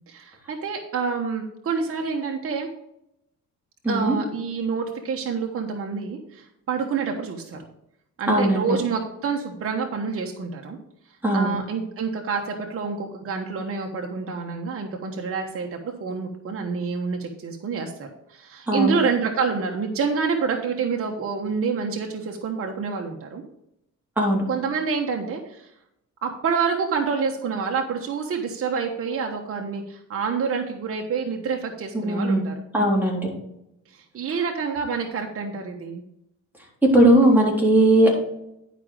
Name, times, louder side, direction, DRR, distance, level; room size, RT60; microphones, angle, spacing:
voice 1, 0.1-2.7 3.9-7.6 8.2-10.8 11.3-23.4 24.5-25.7 26.2-32.5 33.9-36.0, right 5 dB, 50° right, 2 dB, 1.2 m, -27 dB
voice 2, 3.8-4.2 8.3-8.8 11.2-11.5 18.7-19.0 24.2-24.4 31.9-32.5 32.7-33.3 36.9-38.2, right 1 dB, 5° right, -3 dB, 3.8 m, -18 dB
10.5 x 5.1 x 5.0 m, 0.81 s
cardioid pair, 90°, 30 cm